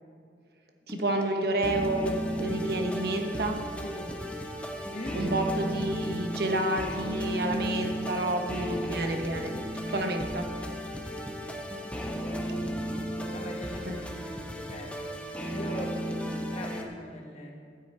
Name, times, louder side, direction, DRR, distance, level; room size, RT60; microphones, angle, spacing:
sound 1, 0.9-16.8, equal, 5° left, 0.8 m, -34 dB
voice 1, 0.9-3.6 5.1-9.6 9.9-10.5 13.9-14.0, right 1 dB, 60° right, 3 dB, 1.2 m, -30 dB
voice 2, 4.8-5.5 13.3-14.9 15.4-17.5, left 1 dB, 35° left, 0 dB, 1.6 m, -41 dB
14.5 x 9.3 x 4.4 m, 2.3 s
head